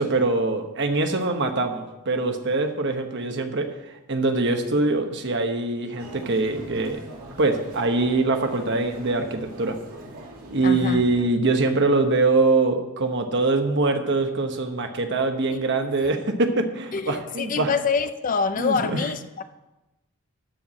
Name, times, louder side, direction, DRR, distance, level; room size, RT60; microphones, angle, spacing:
voice 1, 0.0-3.7 4.1-7.0 7.4-9.8 10.5-17.7 18.6-19.0, right 3 dB, 55° right, 1.1 m, -23 dB
Human voice, 6.0-11.2, right 1 dB, 85° right, 2.6 m, -41 dB
voice 2, 10.6-11.0 15.5-15.6 16.0-16.1 16.9-19.4, left 5 dB, 35° left, 0.5 m, -26 dB
12.5 x 4.7 x 7.6 m
head